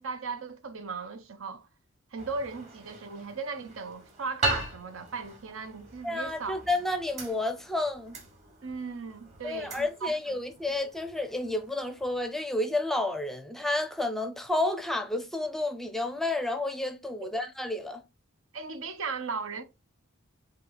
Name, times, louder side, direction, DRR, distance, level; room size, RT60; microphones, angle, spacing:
voice 1, 0.0-1.7 2.1-6.6 8.6-10.2 17.2-17.3 18.5-19.6, right 4 dB, 70° right, 0.7 m, -37 dB
sound 1, 2.2-12.3, right 2 dB, 30° right, 1.4 m, -39 dB
voice 2, 6.0-8.2 9.4-18.0, left 2 dB, ahead, 0.5 m, -30 dB
4.6 x 2.9 x 3.8 m
head